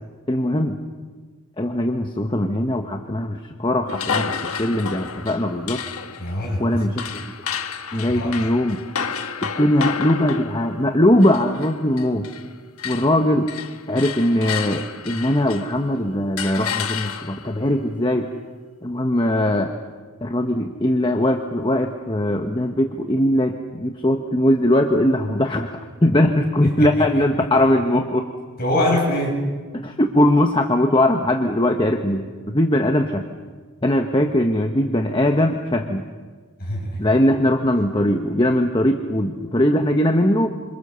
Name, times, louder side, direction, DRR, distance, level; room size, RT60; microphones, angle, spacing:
voice 1, 0.3-0.8 1.6-5.8 6.6-7.3 7.9-8.8 9.4-12.3 12.8-13.5 13.9-18.3 18.8-19.7 20.2-28.2 29.8-33.2 33.8-36.0 37.0-40.5, left 1 dB, 20° left, 4 dB, 1.1 m, -20 dB
sound 1, 3.9-12.5 12.8-15.8 16.4-17.6, left 6 dB, 80° left, 1.3 m, -31 dB
voice 2, 6.2-6.6 8.1-8.3 26.6-27.5 28.6-29.4 36.6-37.0, left 1 dB, 45° left, -1 dB, 8.0 m, -24 dB
27.0 x 26.0 x 6.9 m, 1.5 s
head